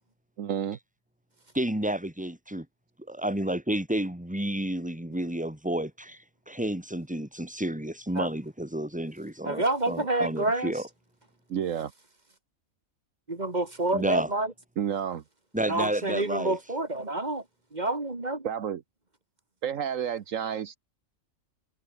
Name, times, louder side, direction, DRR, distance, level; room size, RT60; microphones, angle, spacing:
voice 1, 0.4-0.8 11.5-11.9 14.8-15.2 18.4-18.8 19.6-20.8, right 8 dB, 70° right, 1.4 m, -30 dB
voice 2, 1.5-2.7 3.1-10.8 13.9-14.3 15.5-16.5, right 1 dB, 5° right, 3.2 m, -31 dB
voice 3, 9.4-10.7 13.3-14.5 15.7-17.4 17.7-18.5, right 2 dB, 30° right, 2.4 m, -28 dB
omnidirectional pair, 1.4 m